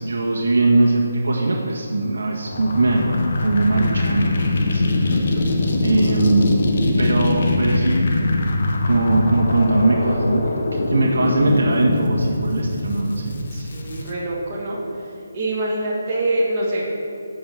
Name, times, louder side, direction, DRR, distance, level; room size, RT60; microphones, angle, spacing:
voice 1, 0.0-5.2 5.8-6.5 7.0-8.0 8.9-13.3, right 2 dB, 80° right, -2 dB, 1.5 m, -20 dB
sound 1, 2.5-14.1, left 2 dB, 50° left, 1.3 m, -22 dB
voice 2, 13.5-14.8 15.3-16.8, right 1 dB, 20° right, -7 dB, 1.7 m, -24 dB
8.6 x 6.6 x 7.1 m, 2.7 s
hypercardioid pair, 170°, 0 cm